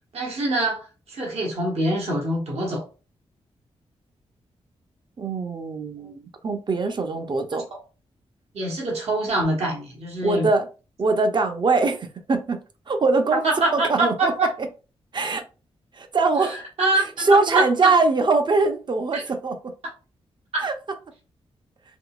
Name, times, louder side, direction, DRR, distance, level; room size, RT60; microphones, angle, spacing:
voice 1, 0.1-2.8 7.5-7.6 8.5-10.5 13.3-14.5 16.8-17.9 19.1-19.2 20.5-20.7, right 2 dB, 65° right, 1.2 m, -24 dB
voice 2, 5.2-7.7 10.2-10.7 11.0-13.4 13.7-14.5 15.1-15.4 15.9-16.6 17.2-19.7 20.6-20.7, right 3 dB, 45° right, 0.6 m, -22 dB
3.6 x 2.9 x 2.3 m
cardioid pair, 75°, 11 cm